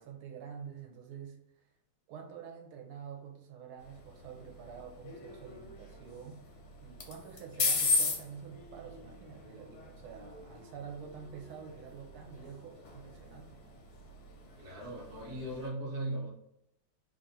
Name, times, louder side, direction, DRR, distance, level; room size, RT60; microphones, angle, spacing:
voice 1, 0.0-1.7 2.1-6.4 6.8-13.6, right 7 dB, 75° right, 2 dB, 1.5 m, -47 dB
sound 1, 3.8-15.7, left 3 dB, 70° left, 0.9 m, -38 dB
voice 2, 14.6-16.3, right 1 dB, 45° right, -3 dB, 0.9 m, -38 dB
3.5 x 2.4 x 4.0 m, 0.79 s
omnidirectional pair, 2.4 m